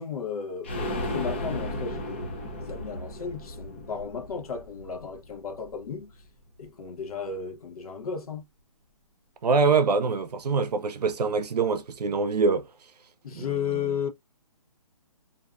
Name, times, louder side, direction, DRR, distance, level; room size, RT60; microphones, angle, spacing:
voice 1, 0.0-2.3 2.6-6.1 6.6-8.5 13.2-14.1, left 6 dB, 65° left, 0.8 m, -34 dB
sound 1, 0.6-6.3 6.6-6.7 7.0-7.1, left 1 dB, 20° left, 0.3 m, -35 dB
voice 2, 9.4-12.7 13.3-14.0, right 4 dB, 85° right, 0.5 m, -25 dB
2.6 x 2.4 x 2.2 m
hypercardioid pair, 155°, 20 cm